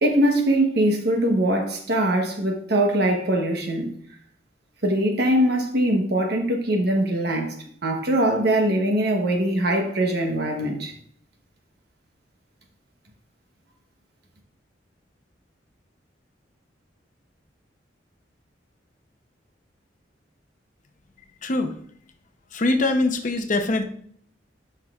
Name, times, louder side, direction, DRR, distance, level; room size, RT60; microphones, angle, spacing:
voice 1, 0.0-3.9 4.8-7.6 7.8-10.9, right 1 dB, 60° right, 1.0 m, -22 dB
voice 2, 21.4-21.7 22.5-23.8, left 2 dB, 45° left, 0.8 m, -22 dB
11.0 x 5.8 x 2.4 m
head